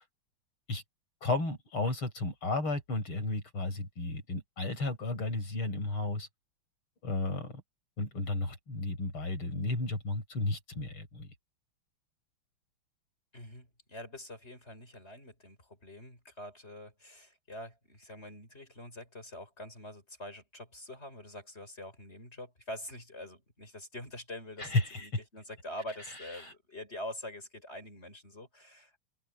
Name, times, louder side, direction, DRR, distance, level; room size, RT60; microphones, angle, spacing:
voice 1, 1.2-6.3 7.0-7.6 8.0-11.3 24.6-25.1 26.4-26.5, left 2 dB, 85° left, 6.8 m, -33 dB
voice 2, 13.3-29.0, left 1 dB, 30° left, 6.7 m, -45 dB
open air
omnidirectional pair, 2.3 m